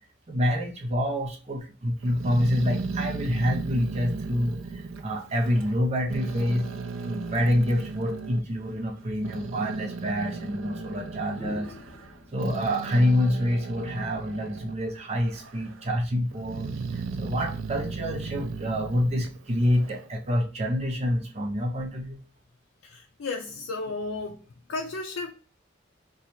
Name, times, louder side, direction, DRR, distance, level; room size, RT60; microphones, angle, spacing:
voice 1, 0.3-6.7 7.1-11.7 12.3-22.2, equal, 35° right, 0.5 m, -27 dB
Growling, 2.0-5.8 6.1-8.4 9.0-14.8 15.2-15.9 16.3-20.1, right 4 dB, 85° right, 0.4 m, -36 dB
sound 1, 9.8-9.9 11.2-14.3 15.9-16.2, left 2 dB, 65° left, 1.5 m, -45 dB
voice 2, 22.8-24.4 24.7-25.3, left 3 dB, 80° left, 0.4 m, -33 dB
2.8 x 2.3 x 4.1 m
head